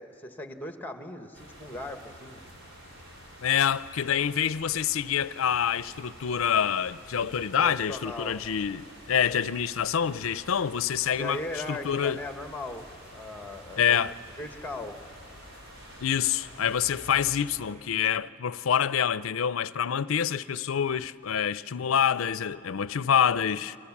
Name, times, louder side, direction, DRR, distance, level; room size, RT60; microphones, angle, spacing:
voice 1, 0.0-2.4 7.6-8.4 11.2-15.0, left 2 dB, 10° left, 1.2 m, -38 dB
sound 1, 1.3-17.5, equal, 60° right, 5.4 m, -48 dB
voice 2, 3.4-12.2 13.8-14.1 16.0-23.8, left 8 dB, 75° left, 0.5 m, -26 dB
30.0 x 24.0 x 7.2 m
head